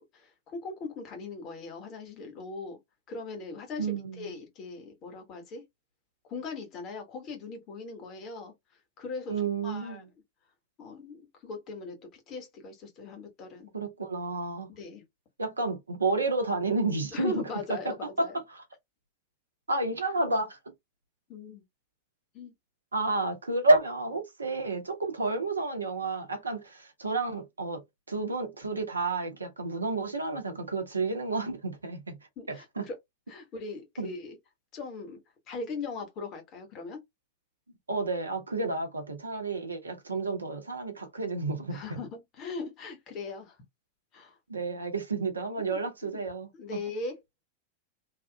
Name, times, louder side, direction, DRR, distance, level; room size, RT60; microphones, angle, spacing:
voice 1, 0.1-2.8 3.1-5.6 6.3-8.5 9.0-10.0 10.8-13.7 14.7-15.0 17.1-18.4 21.3-21.6 22.3-22.5 32.4-32.9 33.3-34.4 34.7-37.0 41.7-43.6 44.1-44.4 45.7-46.2 46.5-47.2, left 3 dB, 35° left, 1.2 m, -39 dB
voice 2, 3.8-4.3 9.3-10.1 13.7-14.7 15.4-17.4 18.2-18.3 19.7-20.6 22.9-27.8 28.1-32.2 32.5-32.8 34.0-34.1 37.9-42.0 44.5-46.5, right 3 dB, 75° right, 0.8 m, -30 dB
3.4 x 2.4 x 2.3 m
figure-of-eight pair, 90°, 0 cm